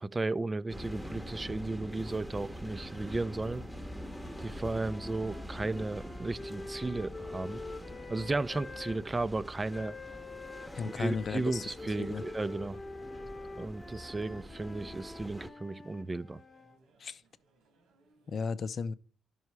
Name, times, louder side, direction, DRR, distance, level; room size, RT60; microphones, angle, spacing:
voice 1, 0.0-3.6 4.4-7.6 8.1-10.0 11.0-12.8 13.6-16.4, right 2 dB, 20° right, 0.4 m, -34 dB
sound 1, 0.7-15.5, equal, 5° right, 0.9 m, -45 dB
sound 2, 1.9-18.4, right 3 dB, 90° right, 2.0 m, -65 dB
sound 3, 2.7-9.0 9.7-16.8, left 3 dB, 20° left, 1.0 m, -47 dB
voice 2, 10.7-12.2 17.0-17.2 18.3-18.9, left 5 dB, 50° left, 0.5 m, -35 dB
11.0 x 5.5 x 4.6 m
cardioid pair, 90°, 0 cm